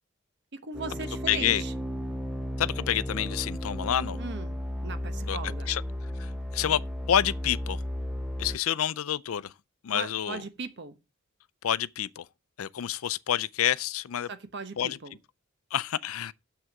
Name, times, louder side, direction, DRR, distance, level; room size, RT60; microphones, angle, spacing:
voice 1, 0.5-1.7 4.2-4.6 4.8-5.7 9.9-11.0 14.3-15.2, right 4 dB, 55° right, 1.0 m, -38 dB
sound 1, 0.7-8.6, equal, ahead, 0.9 m, -34 dB
voice 2, 1.3-1.6 2.6-4.2 5.3-5.8 6.2-6.8 7.1-7.8 8.4-9.5 9.8-10.4 11.6-12.3 12.6-14.3 14.8-15.0 15.7-16.3, left 10 dB, 80° left, 0.4 m, -28 dB
7.0 x 6.3 x 5.9 m
head